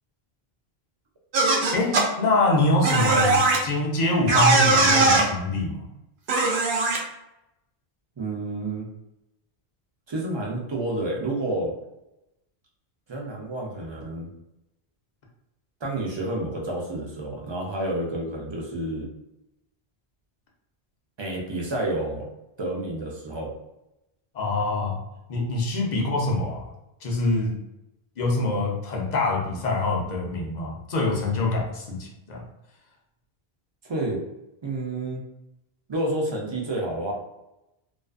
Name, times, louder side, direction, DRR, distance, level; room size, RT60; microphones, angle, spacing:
sound 1, 1.3-2.0 2.8-3.6 4.3-5.2 6.3-7.0, right 3 dB, 90° right, 0.9 m, -19 dB
voice 1, 1.7-5.8 24.3-25.0 25.3-26.7 27.0-27.6 28.2-32.4, left 2 dB, 50° left, -1 dB, 0.6 m, -25 dB
voice 2, 8.2-8.9 10.1-11.7 13.1-14.3 15.8-19.1 21.2-22.3 22.6-23.5 33.8-34.2 34.6-35.2 35.9-37.1, right 1 dB, 40° right, -2 dB, 0.4 m, -29 dB
2.4 x 2.3 x 2.3 m, 0.90 s
omnidirectional pair, 1.1 m